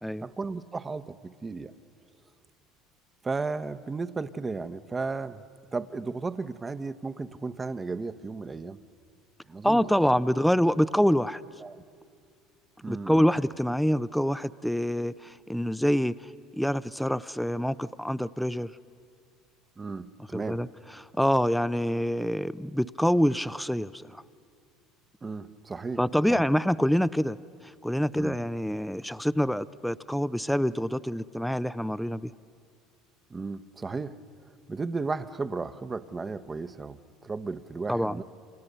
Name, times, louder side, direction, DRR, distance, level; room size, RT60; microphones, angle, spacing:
voice 1, 0.2-1.7 3.2-5.4 5.7-8.8 9.5-9.9 11.6-11.8 12.8-13.3 19.8-20.7 25.2-26.0 26.3-26.4 28.1-28.4 33.3-34.2 34.5-38.2, right 4 dB, 25° right, 11 dB, 1.0 m, -34 dB
voice 2, 9.6-11.4 12.9-16.1 16.5-18.7 20.3-20.7 21.2-24.2 26.0-27.4 27.8-32.3 37.9-38.2, equal, ahead, 16 dB, 0.6 m, -26 dB
28.5 x 26.5 x 6.8 m, 2.3 s
hypercardioid pair, 75°, 0 cm